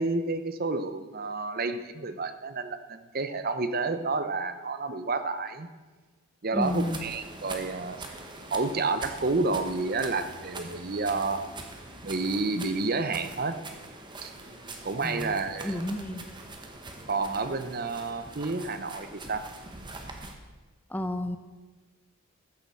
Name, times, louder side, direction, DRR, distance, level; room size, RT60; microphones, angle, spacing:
voice 1, 0.0-5.7 6.4-8.2 8.5-11.4 12.0-13.6 14.2-14.3 14.8-15.8 17.1-19.5, right 3 dB, 40° right, 10 dB, 0.8 m, -30 dB
voice 2, 6.5-7.1 15.0-15.3 15.6-16.2 20.9-21.4, left 1 dB, 10° left, 7 dB, 0.5 m, -31 dB
sound 1, 6.6-20.3, right 2 dB, 20° right, 1.3 m, -43 dB
Bass guitar, 9.3-12.9 13.5-14.0 14.3-16.5, left 1 dB, 30° left, 2.1 m, -54 dB
14.0 x 7.4 x 7.5 m, 1.3 s
head